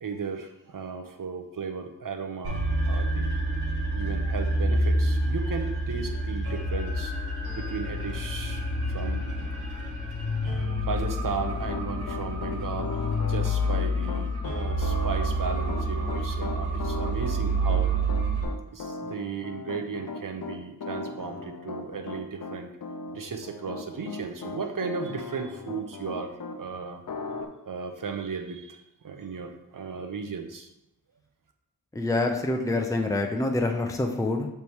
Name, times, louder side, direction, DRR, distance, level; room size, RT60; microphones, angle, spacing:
voice 1, 0.0-3.3 3.9-7.1 7.6-10.0 10.8-17.9 18.7-22.7 23.1-27.0 27.7-28.8 29.0-30.7, right 5 dB, 55° right, 6 dB, 0.8 m, -35 dB
sound 1, 2.4-18.4, equal, 75° right, 1.8 m, -28 dB
Piano, 11.4-26.6 27.1-27.5, left 4 dB, 55° left, 0.6 m, -38 dB
voice 2, 31.9-34.5, left 2 dB, 10° left, 3 dB, 0.7 m, -26 dB
6.8 x 3.4 x 4.6 m, 0.86 s
wide cardioid pair, 60°, 38 cm